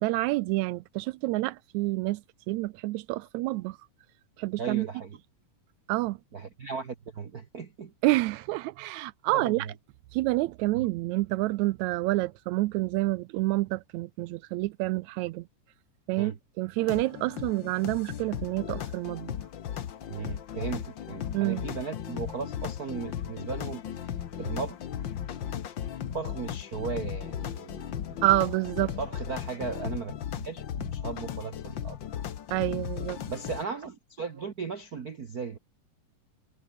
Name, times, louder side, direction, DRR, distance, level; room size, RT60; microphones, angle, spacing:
voice 1, 0.0-2.2 2.5-3.8 4.4-4.9 5.9-6.2 8.0-9.7 10.1-15.4 16.1-16.3 16.6-19.4 21.3-21.6 28.2-29.0 32.5-33.2, right 19 dB, 85° right, 1.6 m, -28 dB
voice 2, 4.6-5.2 6.3-7.9 9.3-9.7 10.7-10.9 16.2-16.4 20.1-24.1 24.4-24.8 26.1-28.2 29.0-32.0 33.2-35.6, right 5 dB, 70° right, 0.8 m, -37 dB
sound 1, 16.8-33.6, left 9 dB, 65° left, 1.1 m, -36 dB
omnidirectional pair, 3.8 m